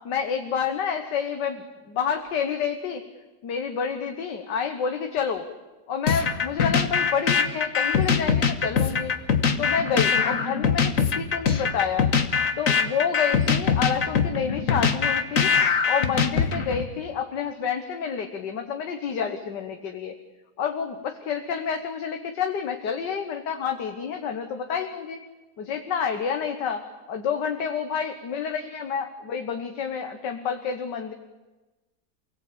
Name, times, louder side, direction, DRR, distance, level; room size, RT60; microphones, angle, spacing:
voice 1, 0.1-3.0 3.4-5.4 5.9-9.1 9.6-12.1 12.6-15.5 15.9-20.2 20.6-25.2 25.6-26.8 27.1-31.1, left 7 dB, 80° left, 6 dB, 1.9 m, -29 dB
sound 1, 6.1-16.9, left 6 dB, 55° left, 1.6 m, -22 dB
28.5 x 18.0 x 8.6 m, 1.2 s
omnidirectional pair, 1.8 m